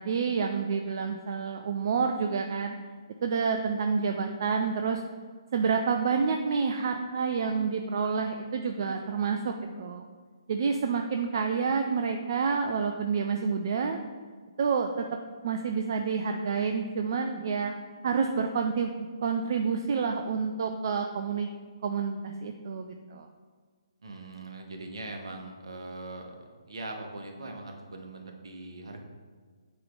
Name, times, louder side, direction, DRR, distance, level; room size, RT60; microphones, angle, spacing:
voice 1, 0.0-2.8 3.2-5.0 5.5-10.1 10.5-14.0 14.6-15.0 15.4-17.7 18.0-18.9 19.2-21.5 21.8-23.3, right 5 dB, 45° right, 5 dB, 0.4 m, -28 dB
voice 2, 24.0-29.0, right 2 dB, 65° right, 3 dB, 1.0 m, -41 dB
8.7 x 3.1 x 3.7 m, 1.5 s
figure-of-eight pair, 135°, 3 cm